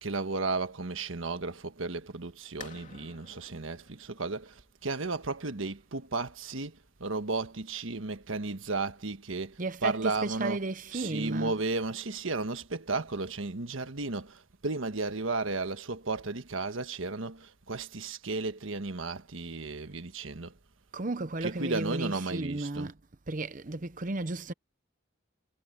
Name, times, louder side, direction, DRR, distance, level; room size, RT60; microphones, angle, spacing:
voice 1, 0.0-10.6 10.9-20.5 21.4-22.9, right 3 dB, 80° right, 1.4 m, -34 dB
sound 1, 2.6-8.1, left 5 dB, 40° left, 3.1 m, -54 dB
voice 2, 9.6-11.6 20.9-23.0 23.3-24.5, right 2 dB, 40° right, 0.8 m, -34 dB
head